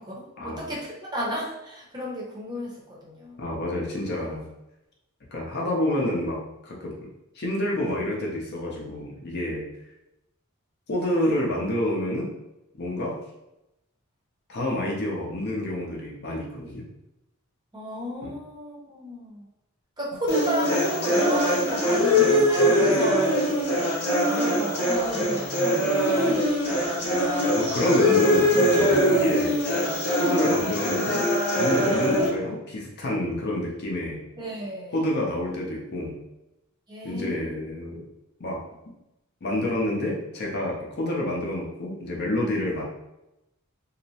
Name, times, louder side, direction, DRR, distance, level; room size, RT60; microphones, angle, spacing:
voice 1, 0.0-3.4 17.7-19.5 20.0-23.7 24.2-27.0 34.4-35.0 36.9-37.5, equal, 20° right, -5 dB, 0.7 m, -33 dB
voice 2, 3.4-4.5 5.3-6.9 7.4-9.7 10.9-12.3 12.7-13.1 14.5-16.8 18.2-18.3 27.6-29.6 30.2-31.2 31.5-34.2 34.9-36.2 37.0-38.1 38.4-38.6 39.4-42.8, left 1 dB, 50° left, -2 dB, 0.5 m, -28 dB
sound 1, 20.3-32.3, equal, 85° left, 0.8 m, -22 dB
2.7 x 2.0 x 2.7 m, 0.91 s
head